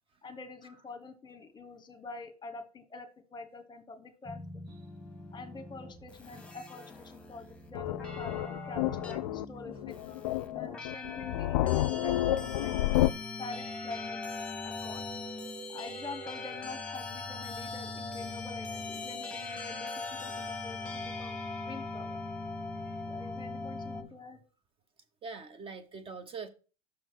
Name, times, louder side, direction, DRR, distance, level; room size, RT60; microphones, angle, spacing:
voice 1, 0.2-4.4 5.3-12.7 13.4-14.2 14.6-15.1 15.7-21.4 21.6-22.2 23.0-24.4, left 3 dB, 20° left, 1.2 m, -46 dB
sound 1, 4.3-24.0, left 3 dB, 5° left, 1.6 m, -40 dB
sound 2, 7.7-13.1, left 15 dB, 65° left, 0.4 m, -30 dB
voice 2, 22.7-23.1 25.2-26.5, right 5 dB, 25° right, 0.8 m, -44 dB
6.3 x 4.5 x 5.8 m
hypercardioid pair, 90°, 20 cm